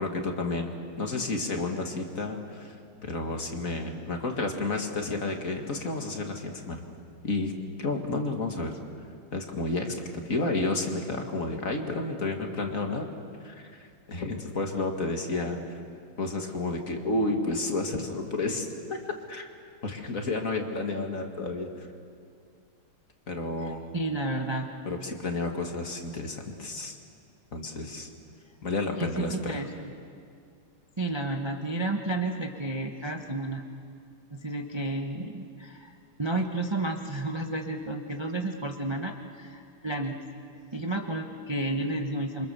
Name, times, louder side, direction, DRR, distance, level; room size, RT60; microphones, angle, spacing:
voice 1, 0.0-6.8 7.2-7.5 7.8-8.8 9.3-10.0 10.2-13.1 13.4-15.8 16.2-19.0 19.3-19.5 19.8-21.9 23.3-23.8 24.8-27.0 27.5-28.1 28.6-29.6, left 2 dB, 40° left, 3 dB, 2.2 m, -31 dB
voice 2, 23.6-24.7 29.0-29.9 31.0-33.6 34.3-35.9 36.2-40.2 40.7-42.5, right 2 dB, 20° right, 3 dB, 0.8 m, -31 dB
27.5 x 25.0 x 7.0 m, 2.3 s
omnidirectional pair, 2.4 m